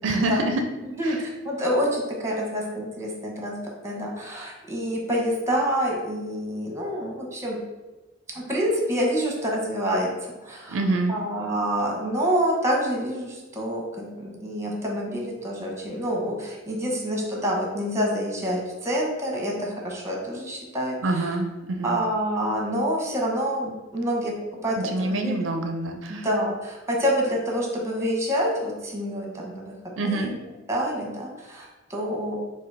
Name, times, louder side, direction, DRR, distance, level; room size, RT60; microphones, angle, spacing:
voice 1, 0.0-0.6 1.0-1.2 10.7-11.1 21.0-21.9 24.8-26.3 30.0-30.3, right 2 dB, 75° right, 4 dB, 0.4 m, -26 dB
voice 2, 1.0-3.6 3.8-7.6 8.3-10.1 10.4-10.8 11.1-21.3 21.8-24.3 24.6-25.4 26.1-29.6 30.0-30.3 30.7-32.4, equal, 15° right, -2 dB, 0.9 m, -27 dB
3.8 x 2.5 x 4.6 m, 1.1 s
head